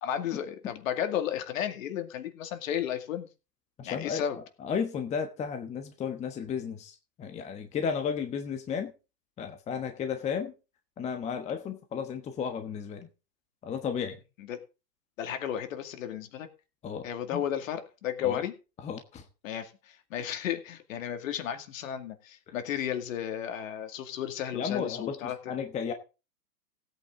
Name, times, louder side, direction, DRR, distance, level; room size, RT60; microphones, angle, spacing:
voice 1, 0.0-3.3 3.8-4.4 14.4-14.6 15.2-16.5 17.0-18.5 19.4-25.4, left 9 dB, 50° left, 7 dB, 2.4 m, -33 dB
voice 2, 3.8-8.9 9.4-10.5 11.0-13.1 13.6-14.2 16.8-17.4 18.2-18.4 18.8-19.2 24.5-25.9, left 6 dB, 15° left, 6 dB, 1.2 m, -34 dB
16.5 x 8.8 x 3.8 m, 0.31 s
hypercardioid pair, 135°, 49 cm